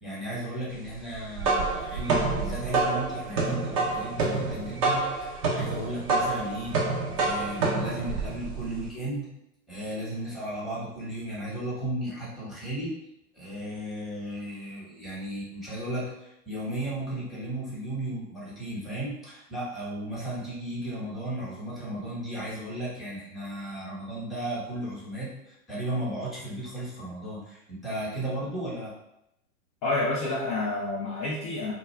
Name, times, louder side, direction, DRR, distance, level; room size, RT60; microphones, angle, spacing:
voice 1, 0.0-6.9 7.2-9.3 9.7-12.9 13.3-28.9, right 1 dB, ahead, -8 dB, 0.8 m, -35 dB
sound 1, 1.1-8.9, right 3 dB, 25° right, 0.4 m, -28 dB
voice 2, 29.8-31.7, left 2 dB, 35° left, -5 dB, 0.4 m, -28 dB
2.4 x 2.2 x 3.2 m, 0.84 s
hypercardioid pair, 115°, 45 cm